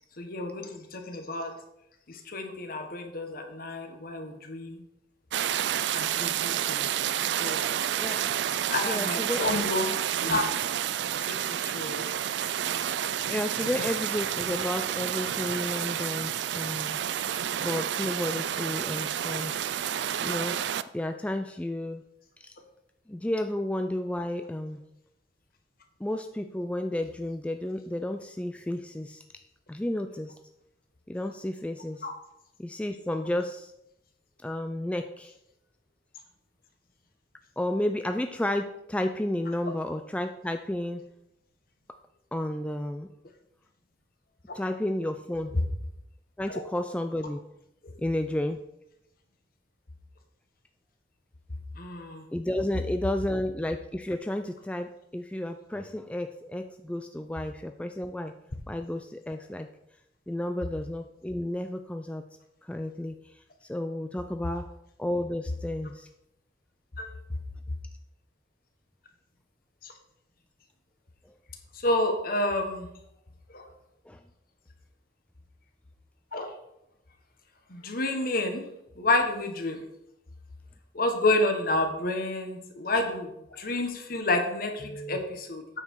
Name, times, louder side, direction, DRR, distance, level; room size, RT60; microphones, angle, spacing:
voice 1, 0.2-1.5 2.1-4.8 5.9-6.9 7.3-7.6 8.7-9.9 10.2-10.4 11.2-12.1 32.0-32.1 44.5-44.6 46.5-46.6 47.8-47.9 51.7-52.2 67.0-67.1 69.8-69.9 71.7-72.9 73.5-73.7 76.3-76.5 77.7-78.7 79.0-79.8 80.9-85.8, left 2 dB, 50° left, 5 dB, 1.4 m, -30 dB
sound 1, 5.3-20.8, right 10 dB, 65° right, 0.4 m, -30 dB
voice 2, 8.8-9.6 13.3-17.0 17.6-19.5 20.2-20.6 20.9-22.0 22.4-22.5 23.1-24.8 26.0-29.2 29.7-30.3 31.1-32.1 32.6-33.7 34.4-35.3 37.6-41.0 42.3-43.1 44.5-45.6 46.4-47.4 48.0-48.6 52.3-58.3 58.7-59.7 60.3-62.2 62.6-63.2 63.7-64.7 65.0-66.1 74.1-74.2, left 1 dB, 5° left, 6 dB, 0.3 m, -32 dB
8.7 x 6.6 x 4.7 m, 0.83 s
head